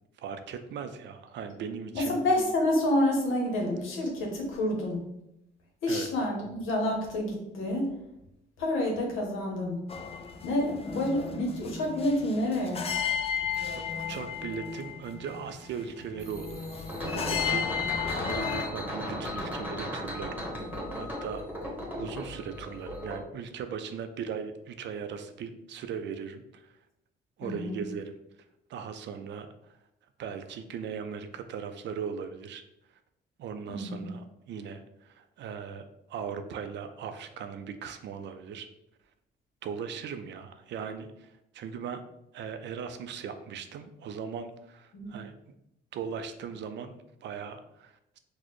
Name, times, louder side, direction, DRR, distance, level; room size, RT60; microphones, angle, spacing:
voice 1, 0.2-2.2 5.9-6.1 13.7-16.6 17.0-17.7 18.0-20.5 20.9-21.4 22.0-26.8 27.4-28.2 28.7-29.8 30.2-32.6 33.4-38.7 39.6-42.0 42.3-45.5 45.9-48.2, right 6 dB, 65° right, 9 dB, 0.4 m, -39 dB
voice 2, 1.9-5.1 5.8-7.9 8.6-9.8 10.4-12.9 27.4-27.8 33.7-34.1 44.9-45.1, left 1 dB, 85° left, -1 dB, 0.8 m, -28 dB
sound 1, 9.9-18.7, left 7 dB, 30° left, 0.3 m, -34 dB
sound 2, 16.2-23.2, equal, 10° right, 1.1 m, -37 dB
4.1 x 2.1 x 3.0 m, 0.86 s
cardioid pair, 90°, 20 cm